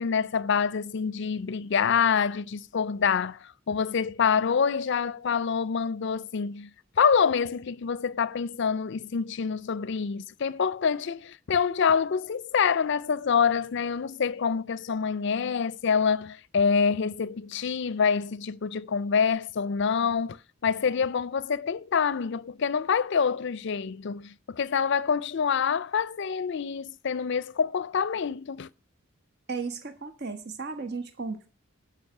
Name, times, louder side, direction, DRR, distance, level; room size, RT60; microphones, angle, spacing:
voice 1, 0.0-6.7 7.0-28.7, left 6 dB, 55° left, 0.5 m, -26 dB
voice 2, 29.5-31.5, right 4 dB, 50° right, 1.4 m, -35 dB
12.0 x 5.8 x 7.9 m
head